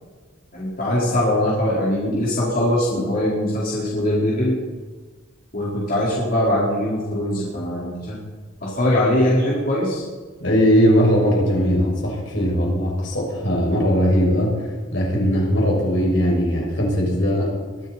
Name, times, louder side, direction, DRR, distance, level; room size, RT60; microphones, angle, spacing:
voice 1, 0.5-4.6 5.5-8.2 8.6-10.0, left 1 dB, 50° left, -7 dB, 4.5 m, -21 dB
voice 2, 10.4-17.5, equal, 70° left, -2 dB, 6.4 m, -19 dB
23.0 x 13.5 x 4.3 m, 1.4 s
head